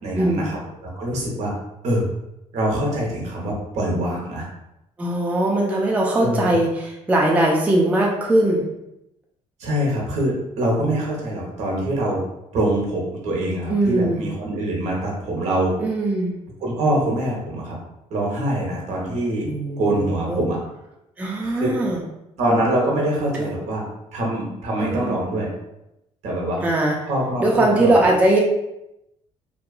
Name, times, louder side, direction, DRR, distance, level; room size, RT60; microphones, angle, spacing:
voice 1, 0.0-1.5 1.8-2.0 2.5-4.5 6.2-6.5 9.6-12.2 12.5-15.7 16.6-17.8 18.1-19.5 19.8-20.6 21.4-21.7 22.4-23.8 24.1-25.5 26.2-26.6 27.1-28.1, right 1 dB, 65° right, -2 dB, 0.9 m, -24 dB
voice 2, 5.0-8.7 13.7-14.3 15.8-16.4 19.4-19.8 20.3-20.5 21.2-22.0 23.2-23.5 24.8-25.1 26.6-27.0 27.4-28.4, right 1 dB, 10° right, -1 dB, 0.3 m, -20 dB
2.8 x 2.3 x 2.3 m, 0.88 s
cardioid pair, 135°, 12 cm